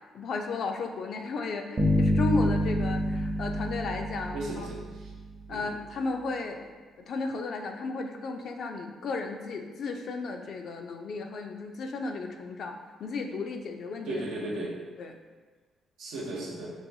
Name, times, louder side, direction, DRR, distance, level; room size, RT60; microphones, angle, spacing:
voice 1, 0.1-4.7 5.5-6.7 7.0-14.2 15.0-15.1, left 3 dB, 65° left, 4 dB, 0.4 m, -34 dB
sound 1, 1.8-5.2, equal, 40° right, 0.8 m, -27 dB
voice 2, 4.3-5.1 5.5-5.7 14.1-14.7 16.0-16.7, right 1 dB, 85° right, -3 dB, 0.8 m, -35 dB
5.4 x 2.3 x 2.7 m, 1.5 s
cardioid pair, 90°, 0 cm